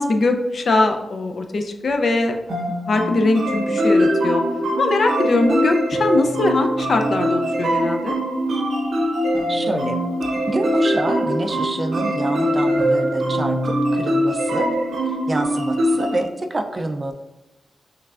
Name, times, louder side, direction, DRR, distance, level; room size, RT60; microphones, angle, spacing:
voice 1, 0.0-4.4 4.8-8.2, left 2 dB, 55° left, 5 dB, 0.4 m, -21 dB
sound 1, 2.5-16.2, equal, 85° right, 0.7 m, -22 dB
voice 2, 9.5-10.0 10.5-14.7 15.3-17.1, right 2 dB, 30° right, 6 dB, 0.3 m, -27 dB
5.6 x 3.3 x 2.4 m, 1.0 s
wide cardioid pair, 130°, 0 cm